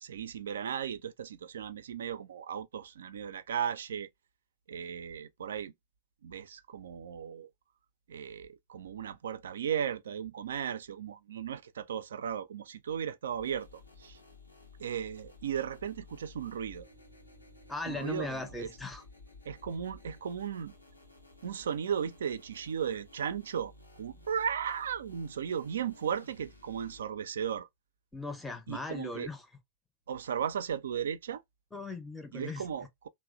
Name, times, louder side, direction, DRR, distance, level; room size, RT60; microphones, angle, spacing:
voice 1, 0.0-4.1 4.7-5.7 6.2-7.5 8.1-13.7 14.0-14.2 14.8-16.9 17.9-18.7 19.5-20.7 21.4-23.7 24.0-27.7 28.7-29.3 30.1-31.4 32.3-33.1, right 8 dB, 65° right, 0.3 m, -36 dB
sound 1, 13.4-27.0, left 3 dB, 85° left, 0.7 m, -55 dB
voice 2, 17.7-19.0 28.1-29.5 31.7-32.7, left 3 dB, 5° left, 0.5 m, -38 dB
3.0 x 2.1 x 2.3 m
figure-of-eight pair, 90°, 0 cm